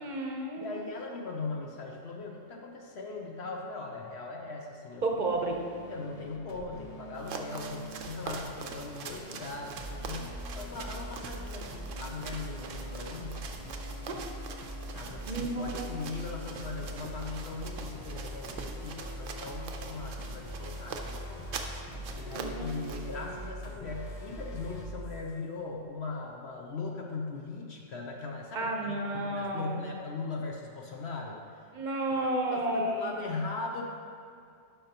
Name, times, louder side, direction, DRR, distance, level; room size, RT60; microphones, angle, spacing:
voice 1, 0.0-0.9 5.0-5.6 14.1-14.2 15.3-15.8 22.3-22.8 28.5-29.9 31.7-33.2, right 2 dB, 40° right, 1 dB, 0.8 m, -32 dB
voice 2, 0.6-5.0 5.9-13.4 14.9-21.5 22.1-29.0 29.3-31.4 32.5-33.9, left 3 dB, 60° left, 0 dB, 0.9 m, -39 dB
sound 1, 5.3-24.9, left 1 dB, 40° left, 0.6 m, -48 dB
sound 2, 7.1-23.1, right 5 dB, 75° right, 1.0 m, -43 dB
sound 3, 9.8-26.8, equal, 5° left, 1.2 m, -43 dB
11.5 x 5.2 x 2.9 m, 2.4 s
omnidirectional pair, 1.3 m